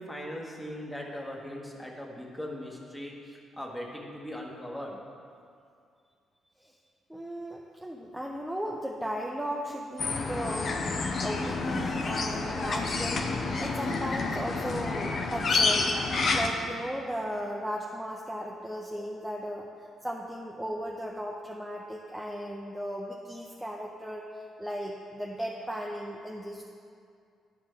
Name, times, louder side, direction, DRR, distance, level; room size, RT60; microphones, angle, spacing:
voice 1, 0.0-5.0, equal, 10° left, -1 dB, 1.4 m, -39 dB
voice 2, 7.1-10.9 11.2-15.9 16.3-19.7 20.0-24.3 24.6-26.6, equal, 5° right, -1 dB, 0.6 m, -36 dB
sound 1, 10.0-16.5, left 3 dB, 50° left, 0.7 m, -29 dB
11.0 x 4.9 x 3.7 m, 2.4 s
cardioid pair, 90°, 0 cm